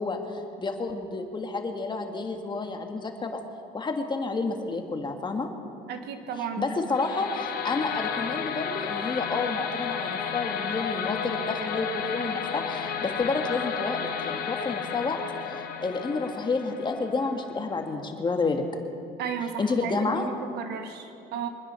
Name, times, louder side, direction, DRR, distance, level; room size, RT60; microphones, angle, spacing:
voice 1, 0.0-3.4 3.7-5.5 6.6-18.6 19.6-20.2, left 3 dB, 25° left, 4 dB, 1.7 m, -30 dB
voice 2, 5.9-6.8 19.2-21.5, right 6 dB, 75° right, 6 dB, 1.3 m, -34 dB
sound 1, 6.9-17.9, left 7 dB, 65° left, 1.5 m, -33 dB
24.0 x 10.0 x 5.7 m, 2.6 s
cardioid pair, 110°, 17 cm